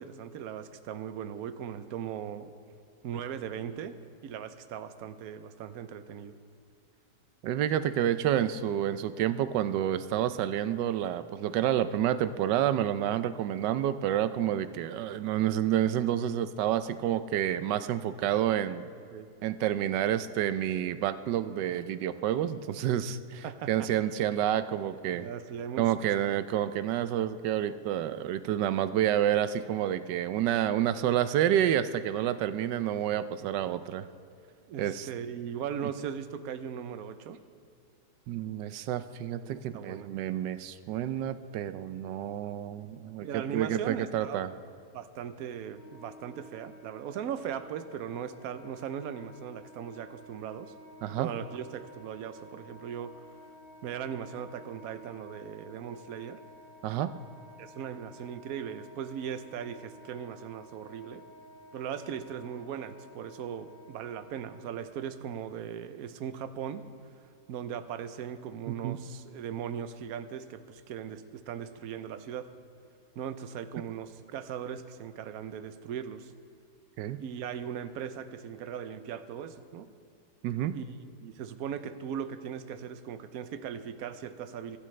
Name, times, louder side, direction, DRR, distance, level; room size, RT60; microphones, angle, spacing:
voice 1, 0.0-2.5 3.0-4.0 4.2-6.4 19.1-19.3 23.4-23.9 25.1-26.1 26.8-26.9 33.4-33.8 34.7-37.4 39.4-40.1 43.2-44.4 44.9-50.7 51.2-53.2 53.8-56.4 57.6-61.3 61.7-66.9 67.5-72.5 73.2-76.3 77.2-79.9 80.7-80.9 81.2-84.8, right 8 dB, 65° right, 11 dB, 1.1 m, -39 dB
voice 2, 7.4-18.9 19.4-25.3 25.8-34.1 34.8-35.1 38.3-44.5 51.0-51.3 56.8-57.1 68.7-69.0 77.0-77.2 80.4-80.8, right 11 dB, 85° right, 13 dB, 1.2 m, -29 dB
Wind instrument woodwind instrument, 45.7-65.2, left 1 dB, 40° left, 2.2 m, -53 dB
24.5 x 12.0 x 3.2 m, 2.6 s
omnidirectional pair, 1.8 m